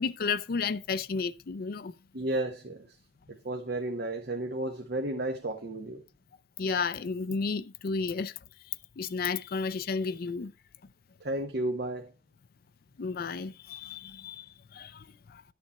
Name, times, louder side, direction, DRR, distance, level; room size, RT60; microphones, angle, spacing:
voice 1, 0.0-1.9 6.6-8.3 9.0-10.5 13.0-15.4, left 4 dB, 55° left, 0.5 m, -32 dB
voice 2, 2.1-2.9 3.4-6.0 11.2-12.1, right 1 dB, 65° right, 1.1 m, -32 dB
11.0 x 6.7 x 4.2 m
head